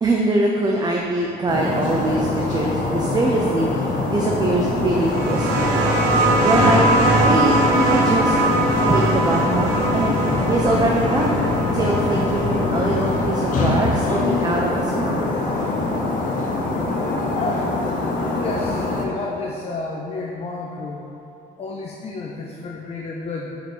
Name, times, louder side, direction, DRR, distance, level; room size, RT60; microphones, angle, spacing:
voice 1, 0.0-6.8 7.2-8.3 8.9-11.5 11.7-15.2, right 2 dB, 25° right, -1 dB, 0.6 m, -23 dB
Car / Idling, 1.1-14.0, left 3 dB, 85° left, 1.7 m, -33 dB
sound 1, 1.5-19.1, left 2 dB, 50° left, 1.2 m, -24 dB
sound 2, 5.0-14.3 15.4-15.5, right 2 dB, 85° right, 1.0 m, -21 dB
voice 2, 17.3-17.7 18.3-21.1 21.6-23.6, left 3 dB, 35° left, -1 dB, 0.7 m, -31 dB
5.3 x 5.0 x 6.1 m, 2.8 s
cardioid pair, 110°, 17 cm